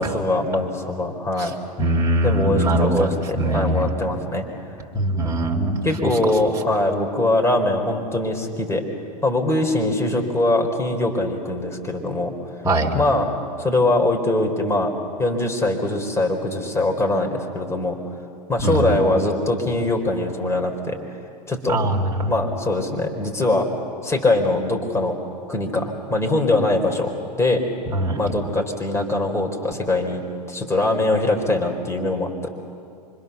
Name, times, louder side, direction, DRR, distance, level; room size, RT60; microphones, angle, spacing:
voice 1, 0.0-1.5 2.2-4.5 5.8-8.8 9.2-12.3 12.9-13.3 13.6-14.9 15.2-18.0 18.5-21.0 21.5-21.8 22.3-23.7 24.0-25.2 25.5-27.6 28.2-30.2 30.5-32.5, left 2 dB, 15° left, 2 dB, 4.3 m, -22 dB
voice 2, 1.8-3.8 4.9-6.1 12.6-12.9 18.6-18.9 21.7-22.3 27.9-28.2, right 1 dB, 15° right, -2 dB, 3.4 m, -21 dB
26.0 x 25.5 x 6.9 m, 2.4 s
hypercardioid pair, 95°, 21 cm